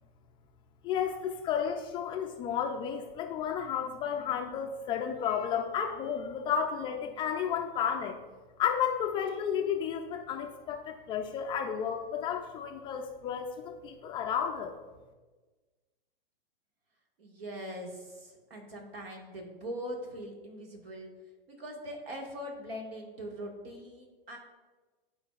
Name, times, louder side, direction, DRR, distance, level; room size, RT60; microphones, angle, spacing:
voice 1, 0.8-8.2 8.6-14.8, left 8 dB, 15° left, 3 dB, 0.3 m, -32 dB
voice 2, 17.2-21.1 21.5-24.4, equal, 80° right, 0 dB, 1.9 m, -41 dB
12.0 x 4.1 x 2.4 m, 1.3 s
hypercardioid pair, 120°, 29 cm